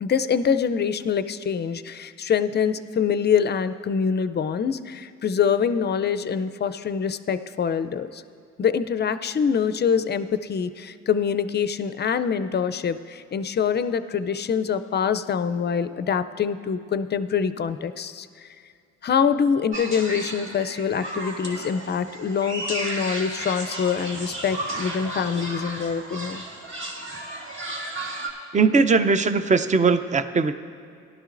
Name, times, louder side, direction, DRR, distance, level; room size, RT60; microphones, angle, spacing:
voice 1, 0.0-8.2 8.6-18.5 19.0-26.4, left 7 dB, 35° left, 12 dB, 0.4 m, -25 dB
sound 1, 19.7-28.3, right 1 dB, 40° right, 1.8 m, -34 dB
voice 2, 28.5-30.5, right 4 dB, 25° right, 11 dB, 0.5 m, -19 dB
17.5 x 12.0 x 2.5 m, 2.3 s
cardioid pair, 90°, 30 cm